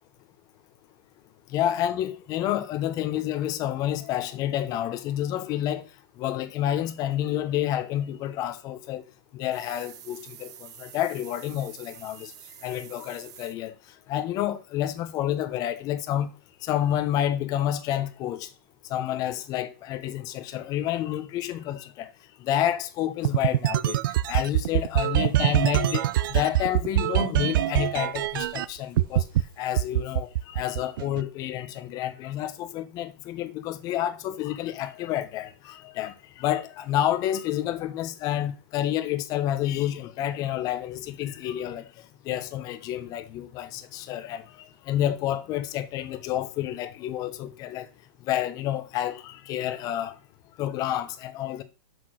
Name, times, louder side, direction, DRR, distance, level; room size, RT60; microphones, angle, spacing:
voice 1, 1.5-5.8 6.2-9.0 9.3-12.3 12.6-13.7 14.1-16.3 16.6-18.5 18.9-22.1 22.4-24.0 24.3-29.3 29.6-41.8 42.2-44.4 44.9-47.9 48.3-50.2 50.6-51.6, left 12 dB, 30° left, 0.9 m, -29 dB
sound 1, 9.5-13.5, right 10 dB, 25° right, 0.9 m, -47 dB
sound 2, 23.2-28.7 29.0-29.4 29.8-31.2, right 14 dB, 55° right, 0.5 m, -23 dB
6.3 x 5.8 x 6.4 m
hypercardioid pair, 150°, 13 cm